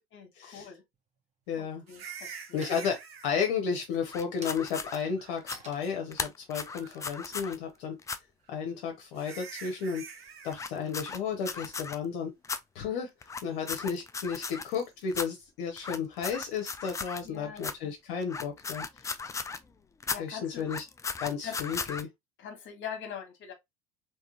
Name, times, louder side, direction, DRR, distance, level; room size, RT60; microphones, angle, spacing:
voice 1, 0.1-0.8 1.6-2.7 17.2-17.9 20.1-20.7 21.4-21.6 22.4-23.5, left 8 dB, 40° left, 1.3 m, -43 dB
sound 1, 0.9-1.5 1.9-2.4 2.6-3.2 3.6-8.0, right 3 dB, 25° right, 1.3 m, -51 dB
voice 2, 1.5-1.8 2.5-8.0 8.5-10.0 10.4-12.3 12.7-13.1 13.4-18.8 20.2-20.8 21.2-22.1, left 6 dB, 60° left, 0.9 m, -33 dB
sound 2, 1.9-3.3 5.0-5.5 5.8-5.9 6.6-7.1 8.5-8.6 9.1-10.6 14.7-14.9, right 6 dB, 80° right, 0.7 m, -46 dB
sound 3, 4.1-5.0 5.4-5.6 6.1-7.6 8.0-8.2 10.5-11.9 12.4-12.6 13.2-14.8 15.1-15.3 15.8-17.3 17.6-17.7 18.2-19.6 20.0-20.2 20.6-22.0, left 5 dB, 10° left, 0.3 m, -36 dB
3.6 x 2.9 x 2.9 m
figure-of-eight pair, 65°, 30 cm